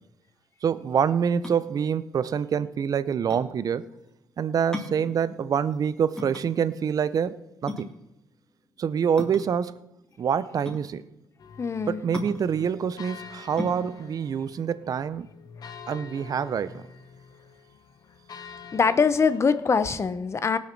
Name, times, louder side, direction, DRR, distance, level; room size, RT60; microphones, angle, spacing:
voice 1, 0.6-3.8 4.4-7.9 8.8-9.8 10.2-11.0 11.9-15.3 15.9-16.9, right 7 dB, 50° right, 0.7 m, -26 dB
sound 1, 1.4-15.6, left 2 dB, 10° left, 2.3 m, -40 dB
sound 2, 11.4-20.0, left 6 dB, 55° left, 1.1 m, -47 dB
voice 2, 11.6-12.0 18.7-20.6, left 5 dB, 35° left, 0.9 m, -23 dB
18.0 x 6.5 x 6.0 m
cardioid pair, 90°, 8 cm